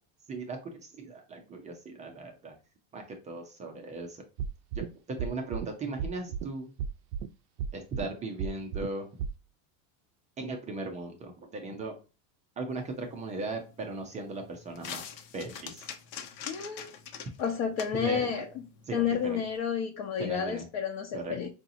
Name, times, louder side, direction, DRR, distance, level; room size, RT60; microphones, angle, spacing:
voice 1, 0.3-2.5 2.9-4.2 4.8-6.7 7.7-9.1 10.4-11.9 12.6-15.0 15.3-15.9 17.9-18.3 18.9-19.4 20.2-20.7 21.1-21.4, right 3 dB, 15° right, 3 dB, 0.3 m, -38 dB
sound 1, 4.4-4.9 5.2-5.7 6.0-6.5 6.8-7.3 7.6-8.1 8.4-8.9 9.2-9.3, right 7 dB, 70° right, 0.5 m, -33 dB
sound 2, 12.7-19.6, left 7 dB, 80° left, 0.9 m, -46 dB
voice 2, 16.5-16.9 17.4-18.4 18.9-21.5, left 7 dB, 55° left, 1 dB, 0.8 m, -30 dB
4.7 x 2.7 x 2.5 m, 0.32 s
supercardioid pair, 135°, 49 cm